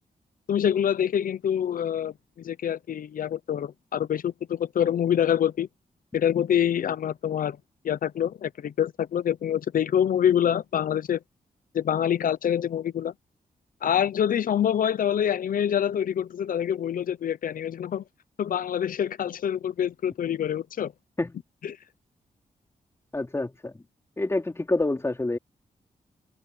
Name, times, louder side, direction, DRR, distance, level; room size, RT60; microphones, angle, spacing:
voice 1, 0.5-5.7 6.1-7.6 7.8-11.2 11.7-13.1 13.8-18.0 18.4-20.9 21.6-21.8, left 9 dB, 70° left, 0.7 m, -26 dB
voice 2, 23.1-23.8 24.2-25.4, left 2 dB, 20° left, 4.2 m, -27 dB
wide cardioid pair, 125°, 15 cm